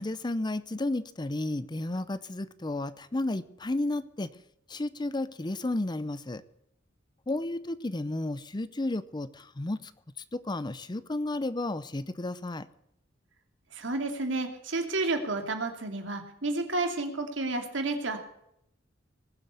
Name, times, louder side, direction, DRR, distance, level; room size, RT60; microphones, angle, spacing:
voice 1, 0.0-4.3 4.7-6.4 7.3-9.8 10.3-12.6, left 2 dB, 25° left, 15 dB, 0.6 m, -32 dB
voice 2, 13.7-18.2, right 2 dB, 70° right, 4 dB, 2.6 m, -31 dB
20.0 x 7.7 x 8.2 m, 0.77 s
head